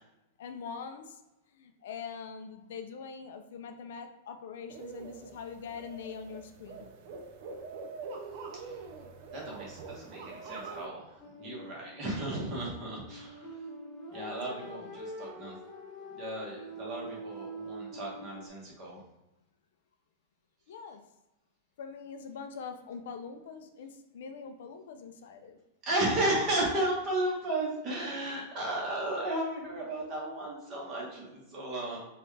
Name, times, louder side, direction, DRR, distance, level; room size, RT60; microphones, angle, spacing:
voice 1, 0.4-1.2 1.5-6.9 14.3-14.9 20.7-21.0 21.8-25.6, left 6 dB, 65° left, 6 dB, 0.4 m, -43 dB
sound 1, 4.7-10.9, right 4 dB, 40° right, 0.4 m, -44 dB
voice 2, 9.3-13.6 14.1-15.6 16.1-19.0 25.8-32.0, right 1 dB, 25° right, -4 dB, 1.2 m, -34 dB
sound 2, 11.2-18.5, right 1 dB, 15° left, 0.9 m, -45 dB
4.1 x 2.4 x 3.3 m, 0.97 s
supercardioid pair, 175°, 0 cm